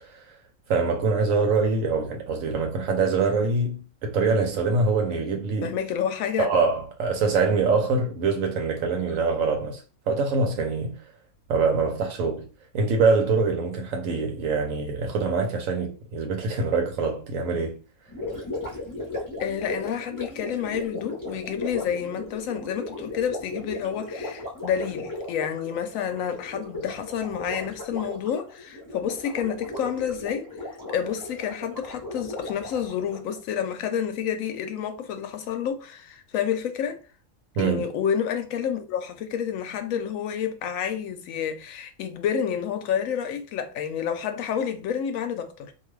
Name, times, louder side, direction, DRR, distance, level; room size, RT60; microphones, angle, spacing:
voice 1, 0.7-5.8 6.4-11.0 11.5-12.5 12.7-17.8 37.6-37.8, right 4 dB, 85° right, 1.1 m, -24 dB
voice 2, 5.6-6.5 19.4-37.0 37.6-45.7, left 8 dB, 90° left, 1.0 m, -29 dB
Gurgling, 18.1-33.4, left 2 dB, 20° left, 0.7 m, -36 dB
2.6 x 2.3 x 3.1 m
omnidirectional pair, 1.3 m